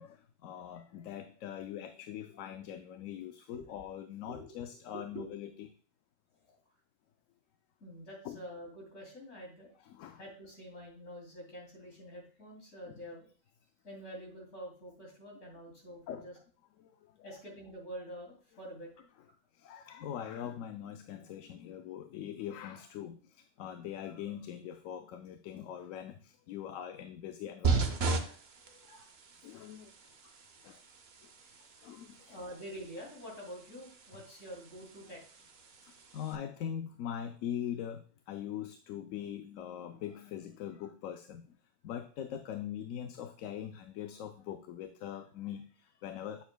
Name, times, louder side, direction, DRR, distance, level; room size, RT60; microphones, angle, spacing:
voice 1, 0.0-5.7 8.2-8.4 9.8-10.2 12.9-13.0 16.1-16.3 16.8-17.3 19.5-28.0 29.4-29.9 30.6-30.8 31.2-31.3 31.8-32.3 35.8-41.6 41.8-46.4, left 10 dB, 85° left, 7 dB, 1.0 m, -42 dB
voice 2, 4.3-4.6 4.9-5.3 7.8-9.7 10.1-13.3 13.8-16.4 17.2-18.9 27.7-27.8 28.2-29.1 32.3-35.2, equal, 70° left, -2 dB, 3.2 m, -47 dB
sound 1, 27.6-36.3, right 4 dB, 55° right, 1.0 m, -37 dB
9.0 x 7.0 x 2.2 m, 0.44 s
omnidirectional pair, 1.3 m